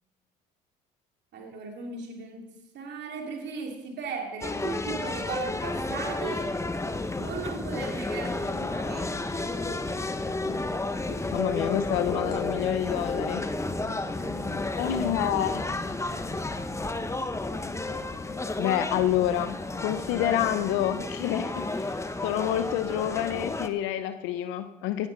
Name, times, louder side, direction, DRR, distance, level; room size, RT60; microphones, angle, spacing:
voice 1, 1.3-6.5 7.2-9.2 14.1-15.2, right 5 dB, 60° right, 2 dB, 2.7 m, -37 dB
sound 1, 4.4-23.7, left 2 dB, 15° left, 1.0 m, -32 dB
sound 2, 7.2-7.4 7.7-7.9 8.1-8.3 8.6-8.7 9.4-10.0 10.5-10.7 11.1-11.4 11.7-11.9 12.3-12.4 12.7-12.9 13.4-13.5 13.9-14.0 14.5-14.7 15.2-16.6 16.9-17.0 17.4-18.4, left 4 dB, 50° left, 5.6 m, -43 dB
voice 2, 11.3-13.4 14.8-15.7 18.6-22.0 22.2-25.1, left 11 dB, 80° left, 11 dB, 0.7 m, -28 dB
16.5 x 11.0 x 4.0 m, 0.98 s
hypercardioid pair, 60°, 20 cm